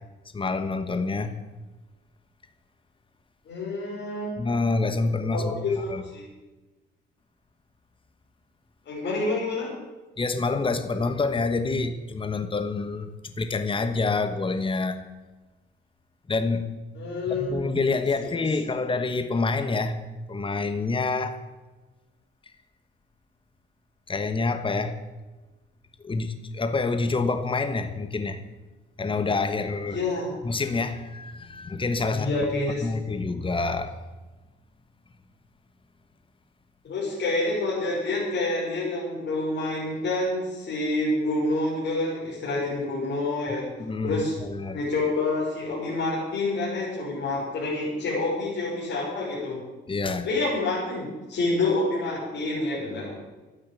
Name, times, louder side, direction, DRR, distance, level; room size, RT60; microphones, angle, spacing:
voice 1, 0.3-1.3 4.4-5.5 5.9-6.0 10.2-13.1 13.4-15.0 16.3-16.7 17.3-20.0 20.3-21.4 24.1-25.0 26.0-28.4 29.0-30.0 30.4-32.3 32.8-33.9 43.8-44.8 49.9-50.3, left 3 dB, 25° left, 1.3 m, -27 dB
voice 2, 3.5-4.3 5.3-6.2 8.9-9.7 16.9-17.7 18.2-18.4 29.9-30.3 32.1-32.9 36.8-43.7 44.0-44.3 44.7-49.6 50.2-53.1, left 2 dB, 60° left, 5.4 m, -28 dB
12.0 x 9.8 x 8.5 m
cardioid pair, 90°, 20 cm